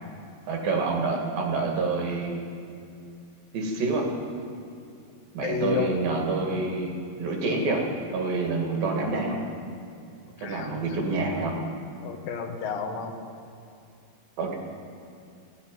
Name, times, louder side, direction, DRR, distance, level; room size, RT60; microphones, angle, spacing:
voice 1, 0.5-2.4 3.5-4.1 5.3-6.9 7.2-7.9 8.1-9.4 10.4-11.6 14.4-14.6, right 3 dB, 75° right, 1 dB, 3.7 m, -27 dB
voice 2, 5.4-5.9 10.4-11.0 12.0-13.1, left 6 dB, 75° left, 4 dB, 2.8 m, -31 dB
16.0 x 8.8 x 9.2 m, 2.5 s
omnidirectional pair, 4.2 m